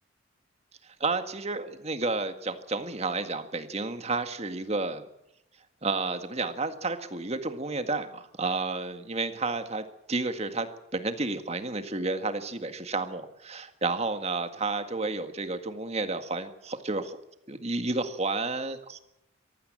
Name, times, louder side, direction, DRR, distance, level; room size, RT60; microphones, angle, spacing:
voice 1, 1.0-5.0 5.8-17.2 17.5-19.0, right 3 dB, 30° right, 8 dB, 1.8 m, -31 dB
23.0 x 16.0 x 7.7 m, 0.84 s
head